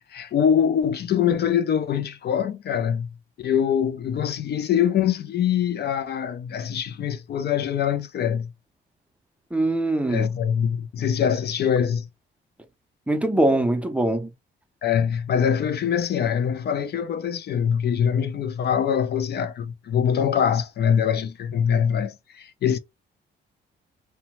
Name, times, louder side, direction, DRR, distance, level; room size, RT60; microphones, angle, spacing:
voice 1, 0.0-3.1 3.4-8.5 10.1-12.1 14.8-22.8, left 8 dB, 55° left, 0.5 m, -23 dB
voice 2, 9.5-10.3 13.1-14.3, right 1 dB, 5° right, 0.6 m, -22 dB
2.7 x 2.2 x 3.0 m
cardioid pair, 90°, 20 cm